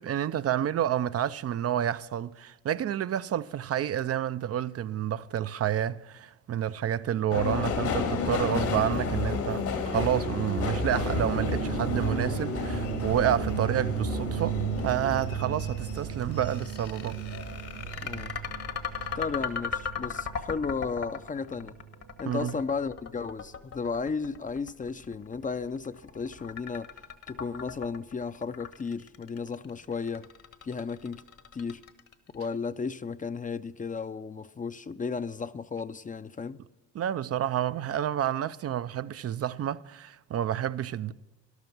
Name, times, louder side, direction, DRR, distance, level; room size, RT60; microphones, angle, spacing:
voice 1, 0.0-17.2 17.9-18.0 19.0-19.2 22.3-22.6 36.9-41.1, right 10 dB, 55° right, 0.5 m, -29 dB
Subway metro underground, 7.3-18.0 18.4-19.1 19.4-19.5, left 4 dB, 75° left, 2.5 m, -32 dB
sound 1, 10.7-22.8 23.1-23.5, right 10 dB, 80° right, 2.3 m, -36 dB
sound 2, 16.2-32.3, left 6 dB, 55° left, 1.4 m, -38 dB
voice 2, 18.0-18.3 19.2-21.8 22.2-26.9 27.3-30.3 30.6-31.2 31.5-31.8 32.3-36.6, left 5 dB, 25° left, 0.6 m, -34 dB
13.0 x 12.0 x 6.0 m
cardioid pair, 90°, 30 cm